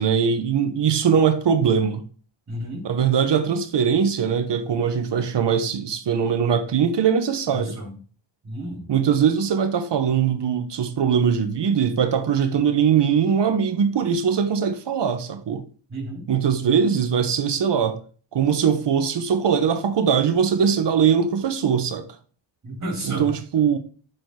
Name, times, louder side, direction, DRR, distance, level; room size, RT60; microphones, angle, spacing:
voice 1, 0.0-2.0 2.8-7.7 8.9-15.6 16.3-18.0 18.3-22.1 23.1-23.8, right 7 dB, 55° right, 1.1 m, -21 dB
voice 2, 2.5-2.8 7.5-7.9 8.4-8.9 15.9-16.2 22.6-23.3, right 1 dB, 35° right, 4.3 m, -31 dB
7.0 x 6.2 x 4.8 m
wide cardioid pair, 140°, 49 cm